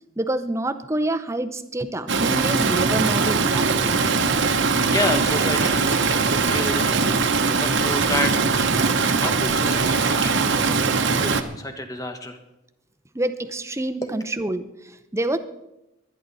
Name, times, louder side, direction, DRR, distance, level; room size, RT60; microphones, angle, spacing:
voice 1, 0.2-4.0 13.1-15.4, right 1 dB, 15° right, 9 dB, 0.7 m, -27 dB
Stream, 2.1-11.4, right 4 dB, 60° right, 1.0 m, -21 dB
voice 2, 4.9-7.1 7.6-8.8 9.2-10.8 11.1-12.4 14.0-14.1, left 2 dB, 15° left, 7 dB, 1.4 m, -30 dB
23.0 x 10.0 x 4.1 m, 0.91 s
head